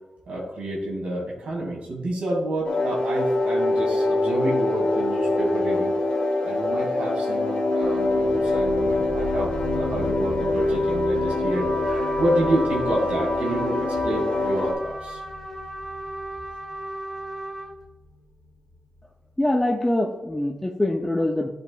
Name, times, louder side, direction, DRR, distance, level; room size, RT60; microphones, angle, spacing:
voice 1, 0.3-6.0 6.4-15.2, right 1 dB, 85° right, -3 dB, 2.1 m, -29 dB
sound 1, 2.6-14.7, left 2 dB, 60° left, 1.6 m, -24 dB
sound 2, 7.8-19.2, left 1 dB, 80° left, 0.8 m, -39 dB
Trumpet, 11.5-17.7, right 1 dB, 10° right, 1.7 m, -36 dB
voice 2, 19.4-21.5, left 1 dB, 10° left, 1 dB, 0.6 m, -24 dB
11.5 x 5.1 x 2.3 m, 1.1 s
wide cardioid pair, 115°, 2 cm